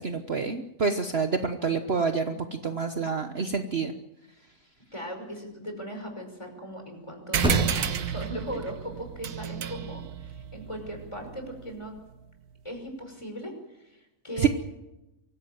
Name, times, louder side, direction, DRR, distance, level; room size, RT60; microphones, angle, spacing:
voice 1, 0.0-3.9 14.4-14.5, right 5 dB, 45° right, 7 dB, 1.3 m, -27 dB
sound 1, 4.8-12.1, equal, 5° right, 6.4 m, -36 dB
voice 2, 4.9-11.9 12.6-14.5, equal, 20° left, 4 dB, 5.6 m, -38 dB
sound 2, 7.3-12.3, right 9 dB, 85° right, 1.6 m, -32 dB
24.5 x 16.0 x 9.3 m, 0.94 s
omnidirectional pair, 1.6 m